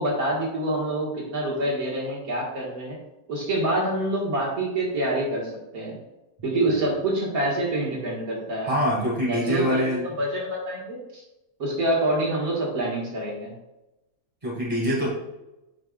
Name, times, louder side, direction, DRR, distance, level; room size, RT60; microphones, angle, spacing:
voice 1, 0.0-3.0 3.3-6.0 6.4-8.8 9.3-11.2 11.6-13.5, right 1 dB, 80° right, -4 dB, 2.2 m, -26 dB
voice 2, 8.6-10.1 14.4-15.1, equal, 20° right, -6 dB, 2.6 m, -25 dB
9.9 x 4.9 x 2.4 m, 0.95 s
omnidirectional pair, 1.5 m